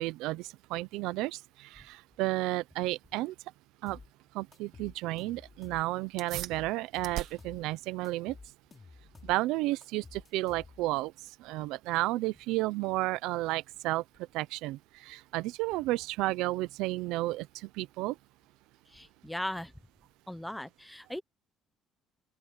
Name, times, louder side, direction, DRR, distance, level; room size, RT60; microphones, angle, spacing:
voice 1, 0.0-3.3 3.8-4.0 4.3-8.4 9.2-11.1 11.4-14.0 14.3-18.2, right 18 dB, 85° right, 0.6 m, -32 dB
sound 1, 3.9-4.1 4.5-5.9 6.3-7.6 8.0-9.4 9.8-11.0, left 4 dB, 20° left, 3.1 m, -52 dB
sound 2, 6.2-16.1, right 13 dB, 70° right, 1.7 m, -47 dB
voice 2, 18.9-19.7 20.3-21.2, left 1 dB, 5° left, 1.1 m, -38 dB
open air
cardioid pair, 155°, 0 cm